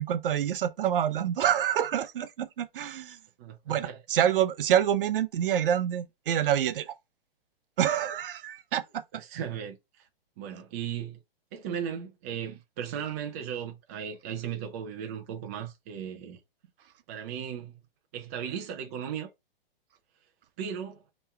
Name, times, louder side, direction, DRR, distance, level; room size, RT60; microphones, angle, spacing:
voice 1, 0.0-3.2 3.7-7.0 7.8-9.0, right 10 dB, 65° right, 0.7 m, -27 dB
voice 2, 3.4-4.0 9.1-10.1 10.4-11.2 11.5-16.4 17.1-17.7 18.1-19.3 20.6-21.0, right 8 dB, 15° right, 0.3 m, -36 dB
3.4 x 3.0 x 4.3 m
hypercardioid pair, 145°, 30 cm